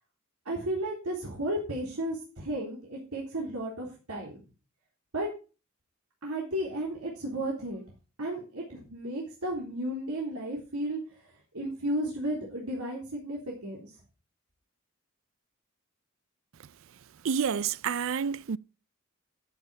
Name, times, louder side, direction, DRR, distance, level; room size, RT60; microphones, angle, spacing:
voice 1, 0.5-4.4 5.1-5.3 6.2-7.8 8.2-11.0 11.5-13.9, right 1 dB, 80° right, 3.6 m, -33 dB
voice 2, 17.2-18.6, right 7 dB, 60° right, 0.4 m, -29 dB
13.0 x 6.6 x 5.1 m
head